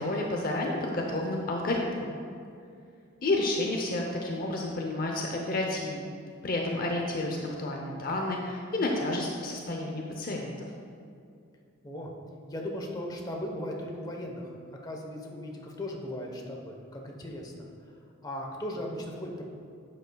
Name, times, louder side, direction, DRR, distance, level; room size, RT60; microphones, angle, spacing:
voice 1, 0.0-2.2 3.2-6.1 6.4-10.7, left 2 dB, 45° left, 1 dB, 0.7 m, -30 dB
voice 2, 12.5-14.5 14.8-17.7 18.2-19.5, left 1 dB, 20° left, 0 dB, 1.0 m, -37 dB
11.5 x 8.1 x 2.3 m, 2.4 s
head